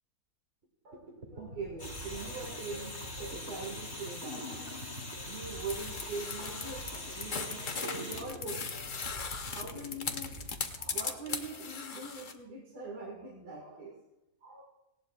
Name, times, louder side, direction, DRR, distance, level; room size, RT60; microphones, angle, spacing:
sound 1, 0.6-0.7 0.9-11.4, equal, 40° right, 1.7 m, -46 dB
voice 1, 0.8-9.1 9.5-10.3 10.8-13.9 14.4-14.6, right 3 dB, 75° right, -2 dB, 2.4 m, -43 dB
sound 2, 1.8-8.2, left 1 dB, 60° left, 3.5 m, -43 dB
sound 3, 5.7-12.3, left 5 dB, 45° left, 0.7 m, -38 dB
18.5 x 17.0 x 2.3 m, 0.97 s
omnidirectional pair, 1.7 m